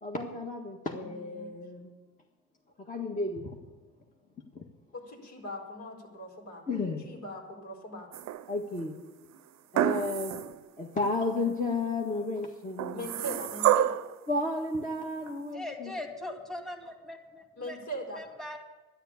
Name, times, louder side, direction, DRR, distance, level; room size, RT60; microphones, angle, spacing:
voice 1, 0.0-1.9 2.8-3.6 4.5-4.6 6.7-7.0 8.5-9.0 9.7-10.4 10.8-13.1 14.3-15.9, left 2 dB, 25° left, 1 dB, 1.7 m, -32 dB
voice 2, 4.9-6.6 7.0-8.1 12.9-14.0 17.6-18.2, equal, 70° left, 0 dB, 4.6 m, -40 dB
sound 1, 8.1-8.7 9.7-10.6 11.0-11.1 12.8-14.1 15.3-15.4, right 12 dB, 65° right, 0.6 m, -28 dB
voice 3, 15.5-17.8 18.2-18.6, left 1 dB, ahead, 2 dB, 2.2 m, -40 dB
11.5 x 10.5 x 8.4 m, 1.2 s
cardioid pair, 90°, 30 cm